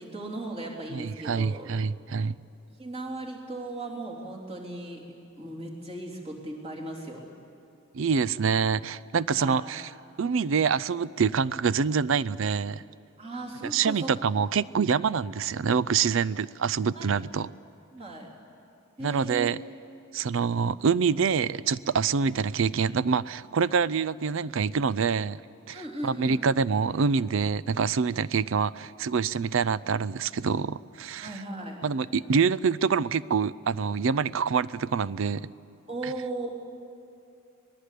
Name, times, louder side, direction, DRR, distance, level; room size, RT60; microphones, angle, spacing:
voice 1, 0.0-1.7 2.8-5.1 5.4-7.2 9.3-9.6 13.2-14.1 16.9-17.1 17.9-18.3 19.0-19.5 25.7-26.4 31.2-31.8 35.9-36.5, right 2 dB, 30° right, -2 dB, 3.3 m, -37 dB
voice 2, 0.9-2.4 7.9-9.9 10.2-12.8 13.6-17.5 19.0-19.6 20.1-25.4 25.7-31.4 31.8-35.5 36.0-36.1, right 6 dB, 65° right, 19 dB, 0.5 m, -26 dB
25.0 x 19.5 x 8.4 m, 2.7 s
head